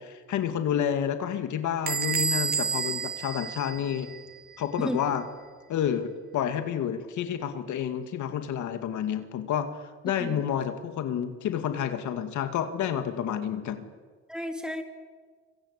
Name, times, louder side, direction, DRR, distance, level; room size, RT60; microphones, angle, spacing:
voice 1, 0.0-4.1 4.6-5.2 5.7-9.7 10.0-13.8, left 9 dB, 80° left, 7 dB, 2.3 m, -29 dB
Bell / Door, 1.9-4.4, right 6 dB, 30° right, 0.7 m, -30 dB
voice 2, 14.3-14.8, equal, 5° right, 5 dB, 3.0 m, -32 dB
26.0 x 25.5 x 8.3 m, 1.5 s
cardioid pair, 100°, 30 cm